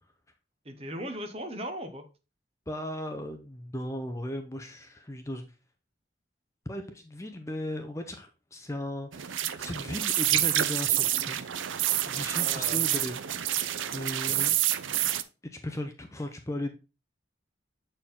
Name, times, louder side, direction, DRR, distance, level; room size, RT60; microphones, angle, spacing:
voice 1, 0.6-2.0 12.2-12.8 14.3-14.4, equal, 30° right, 6 dB, 0.9 m, -38 dB
voice 2, 2.7-5.5 6.7-11.4 12.1-13.6 13.9-14.5 15.5-16.7, left 1 dB, 15° left, 6 dB, 0.5 m, -37 dB
sound 1, 9.1-15.2, right 12 dB, 85° right, 0.5 m, -28 dB
7.2 x 4.5 x 3.7 m, 0.31 s
head